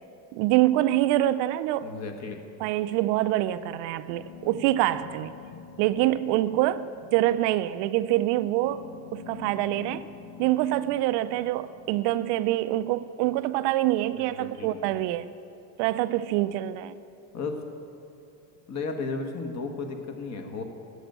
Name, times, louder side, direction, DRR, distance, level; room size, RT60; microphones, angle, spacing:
voice 1, 0.3-1.9 2.6-5.3 5.8-10.1 10.4-15.3 15.8-17.0, right 14 dB, 60° right, 14 dB, 0.5 m, -25 dB
voice 2, 1.8-2.4 14.3-14.8 17.3-17.6 18.7-20.6, left 4 dB, 35° left, 5 dB, 1.3 m, -34 dB
sound 1, 4.0-12.9, left 8 dB, 80° left, 1.3 m, -47 dB
8.1 x 7.9 x 8.9 m, 2.6 s
supercardioid pair, 120°, 48 cm